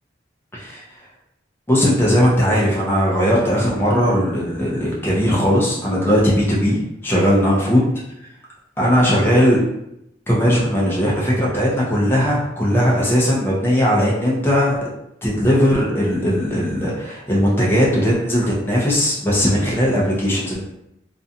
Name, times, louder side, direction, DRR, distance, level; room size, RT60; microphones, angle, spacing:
voice 1, 1.7-7.8 8.8-9.6 10.3-14.8 15.2-20.6, equal, 10° left, -5 dB, 0.6 m, -18 dB
2.5 x 2.2 x 2.7 m, 0.81 s
head